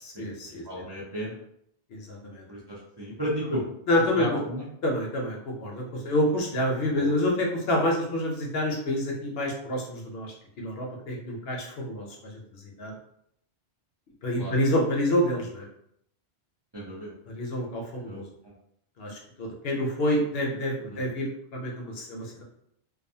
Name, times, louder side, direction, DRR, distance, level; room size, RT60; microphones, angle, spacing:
voice 1, 0.0-0.6 1.9-2.4 3.9-4.4 4.8-13.0 14.2-15.6 17.3-18.3 19.0-22.4, left 1 dB, 65° left, -1 dB, 0.8 m, -28 dB
voice 2, 0.6-1.4 2.5-3.6 4.2-4.7 6.9-7.1 14.4-14.6 16.7-17.1 18.0-18.5 20.9-21.1, equal, 35° right, -7 dB, 0.4 m, -34 dB
2.5 x 2.3 x 2.6 m, 0.73 s
omnidirectional pair, 1.2 m